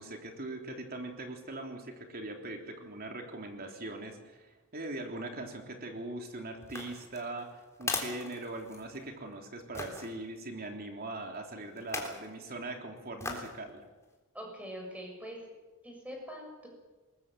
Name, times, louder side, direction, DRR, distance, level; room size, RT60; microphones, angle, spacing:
voice 1, 0.0-7.5 7.8-13.8, right 2 dB, 45° right, 3 dB, 3.4 m, -41 dB
sound 1, 6.6-9.1 9.7-10.1 11.8-12.2 13.2-13.6 14.0-14.1, left 3 dB, 15° left, 3.6 m, -38 dB
voice 2, 14.3-15.4 15.8-16.7, equal, 5° right, 1 dB, 6.7 m, -43 dB
22.0 x 21.0 x 7.7 m, 1.2 s
head